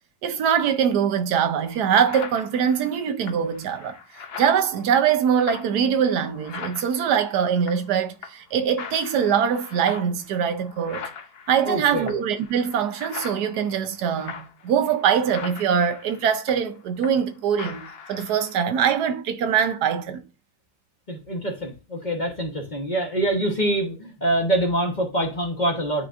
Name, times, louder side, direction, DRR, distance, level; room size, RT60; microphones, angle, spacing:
voice 1, 0.2-4.0 4.4-11.0 11.5-17.8 18.1-20.2, right 8 dB, 80° right, 1.2 m, -23 dB
sound 1, 1.1-1.2 1.6-8.0 8.2-8.5 8.8-17.3 17.6-18.6, left 6 dB, 55° left, 0.7 m, -41 dB
voice 2, 11.6-12.1 21.1-26.1, right 1 dB, 30° left, 1.2 m, -25 dB
10.5 x 3.9 x 2.5 m
omnidirectional pair, 1.8 m